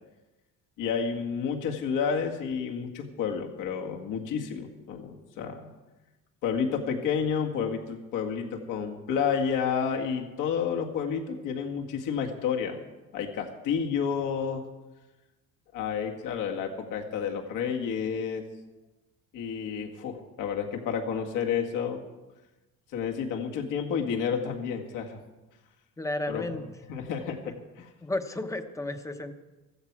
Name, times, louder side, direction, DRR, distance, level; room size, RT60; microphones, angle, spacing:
voice 1, 0.8-5.7 6.4-12.8 13.1-14.6 15.7-18.4 19.3-22.0 22.9-25.2 26.3-26.4 26.9-27.5, left 7 dB, 70° left, 2 dB, 2.0 m, -30 dB
voice 2, 26.0-26.6 28.0-29.3, left 2 dB, 10° left, 7 dB, 0.9 m, -32 dB
15.5 x 14.5 x 4.8 m, 1.1 s
cardioid pair, 150°, 32 cm